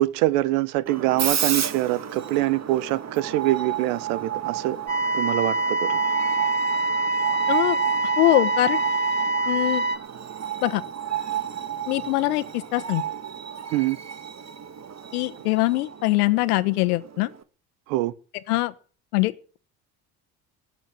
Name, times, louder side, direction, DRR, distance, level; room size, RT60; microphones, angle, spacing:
voice 1, 0.0-4.8 5.1-6.0 13.7-14.0 17.9-18.1, right 16 dB, 80° right, 1.4 m, -24 dB
Screech, 0.9-17.4, right 10 dB, 35° right, 1.8 m, -32 dB
sound 1, 4.9-10.0, right 2 dB, 20° right, 5.7 m, -25 dB
voice 2, 7.5-7.8 8.2-8.8 9.5-9.8 10.6-10.8 11.9-12.4 12.7-13.0 15.1-17.3 18.5-18.7 19.1-19.6, left 19 dB, 85° left, 1.4 m, -22 dB
19.0 x 8.1 x 7.6 m
hypercardioid pair, 70°, 44 cm